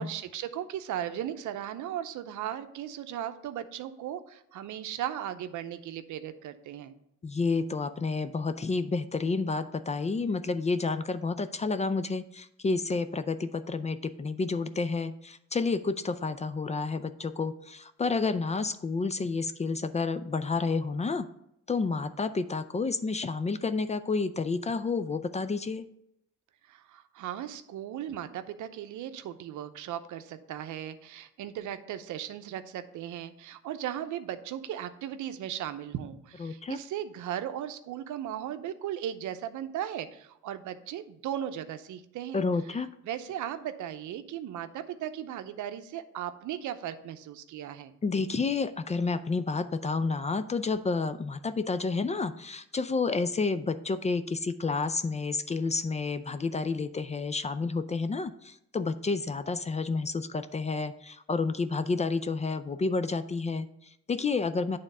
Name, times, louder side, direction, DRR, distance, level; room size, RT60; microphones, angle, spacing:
voice 1, 0.0-6.9 26.7-42.4 43.1-47.9, right 10 dB, 75° right, 10 dB, 0.7 m, -37 dB
voice 2, 7.2-21.3 21.7-25.8 36.4-36.8 42.3-42.9 48.0-64.8, left 4 dB, 25° left, 13 dB, 0.4 m, -30 dB
8.9 x 3.6 x 5.4 m, 0.77 s
cardioid pair, 90°, 30 cm